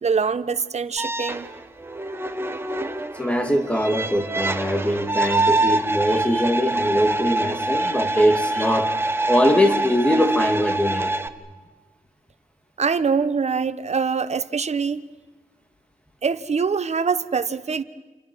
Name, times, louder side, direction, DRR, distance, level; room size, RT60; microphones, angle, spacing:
voice 1, 0.0-1.5 12.8-15.0 16.2-17.8, right 5 dB, 45° right, 1.0 m, -24 dB
sound 1, 1.0-11.3, right 2 dB, 15° right, 1.2 m, -25 dB
voice 2, 3.1-11.1, equal, 10° left, 2.2 m, -22 dB
29.0 x 29.0 x 6.2 m
wide cardioid pair, 145°, 15 cm